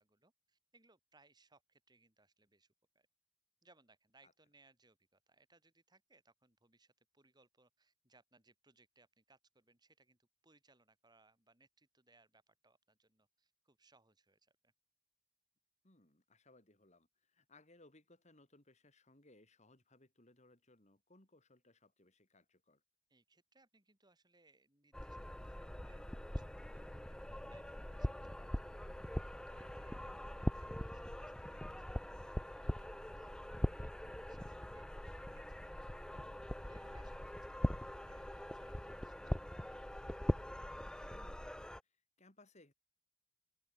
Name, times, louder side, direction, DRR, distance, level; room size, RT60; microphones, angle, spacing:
voice 1, 0.0-3.1 3.6-14.7 23.1-28.8 29.1-31.3 31.6-32.9 33.2-33.3 33.7-35.7 36.0-36.1 36.7-39.8, right 3 dB, 20° right, 5.7 m, -71 dB
voice 2, 15.8-22.8 29.9-30.2 37.1-37.2 41.1-41.5 41.8-42.7, left 2 dB, 35° left, 3.4 m, -66 dB
sound 1, 24.9-41.8, equal, 5° left, 0.3 m, -42 dB
head